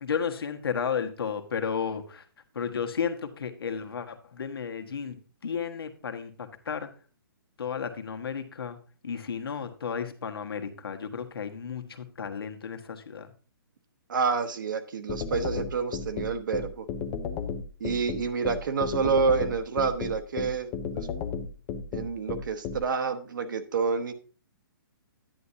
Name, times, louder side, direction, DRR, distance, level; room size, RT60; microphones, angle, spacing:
voice 1, 0.0-2.2 2.5-5.2 5.4-6.9 7.6-8.8 9.0-13.3, left 6 dB, 80° left, 5 dB, 1.4 m, -33 dB
voice 2, 14.1-16.9 17.8-21.1 21.9-24.1, right 5 dB, 55° right, 8 dB, 1.2 m, -28 dB
sound 1, 15.1-22.8, left 6 dB, 10° left, 0.3 m, -33 dB
10.0 x 9.8 x 2.8 m, 0.39 s
hypercardioid pair, 170°, 12 cm